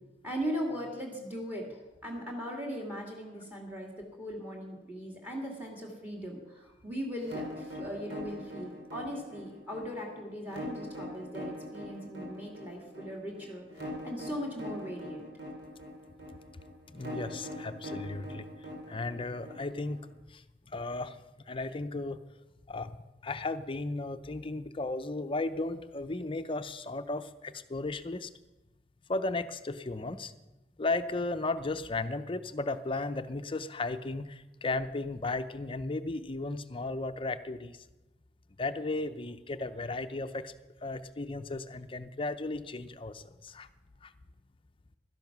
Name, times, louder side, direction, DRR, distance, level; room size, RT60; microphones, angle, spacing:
voice 1, 0.0-13.7 14.0-15.3, equal, 10° right, 0 dB, 2.3 m, -39 dB
sound 1, 7.2-20.1, equal, 80° right, 3.7 m, -42 dB
voice 2, 16.9-18.5 18.9-20.0 20.3-21.2 21.5-22.2 22.7-23.0 23.2-28.3 29.1-30.3 30.8-37.8 38.6-40.5 40.8-43.7 44.0-44.1, left 2 dB, 30° left, 11 dB, 0.6 m, -35 dB
12.5 x 10.5 x 6.0 m, 1.1 s
head